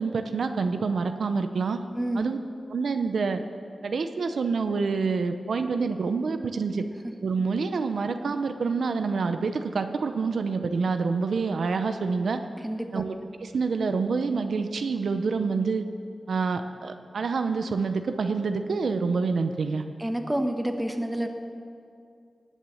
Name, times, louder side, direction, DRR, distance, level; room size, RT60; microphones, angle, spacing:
voice 1, 0.0-1.8 2.1-2.4 2.7-3.4 3.8-6.9 7.2-12.4 12.9-15.8 16.3-19.8, right 4 dB, 85° right, 8 dB, 0.7 m, -27 dB
voice 2, 20.0-21.3, right 1 dB, 10° right, 5 dB, 1.4 m, -28 dB
19.0 x 7.3 x 7.0 m, 2.4 s
cardioid pair, 65°, 0 cm